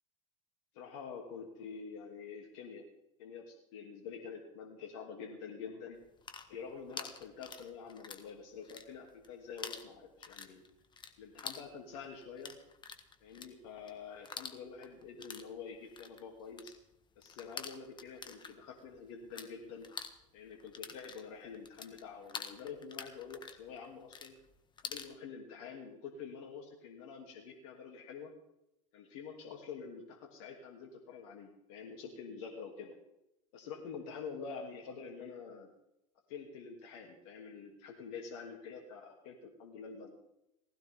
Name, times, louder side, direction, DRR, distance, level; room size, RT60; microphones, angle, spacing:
voice 1, 0.7-2.8 3.2-6.0 6.5-10.6 11.2-12.6 13.2-16.7 17.2-19.9 20.3-24.4 24.8-28.3 28.9-33.0 33.5-35.7 36.3-40.1, left 5 dB, 65° left, 1 dB, 2.9 m, -47 dB
sound 1, 6.0-8.3 8.6-9.3 9.6-19.5 19.8-25.1, left 5 dB, 25° left, 1.6 m, -47 dB
19.0 x 16.5 x 3.7 m, 0.84 s
hypercardioid pair, 90°, 18 cm